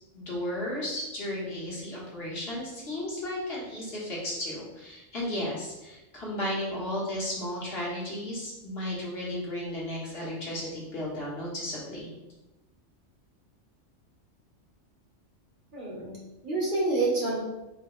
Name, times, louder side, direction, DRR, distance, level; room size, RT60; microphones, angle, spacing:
voice 1, 0.1-12.1, left 1 dB, 55° left, -6 dB, 1.5 m, -34 dB
voice 2, 15.7-17.4, right 2 dB, 45° right, -5 dB, 1.3 m, -28 dB
4.8 x 2.9 x 3.0 m, 1.0 s
omnidirectional pair, 1.3 m